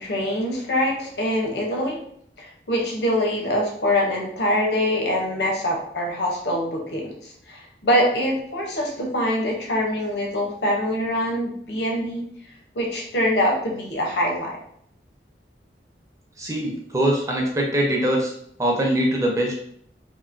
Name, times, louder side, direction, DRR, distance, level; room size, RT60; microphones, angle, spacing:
voice 1, 0.0-2.0 2.4-12.2 12.7-14.6, equal, 80° left, 0 dB, 0.8 m, -24 dB
voice 2, 16.4-18.3 18.6-19.6, right 1 dB, 20° right, -1 dB, 0.6 m, -22 dB
3.0 x 2.6 x 2.6 m, 0.66 s
head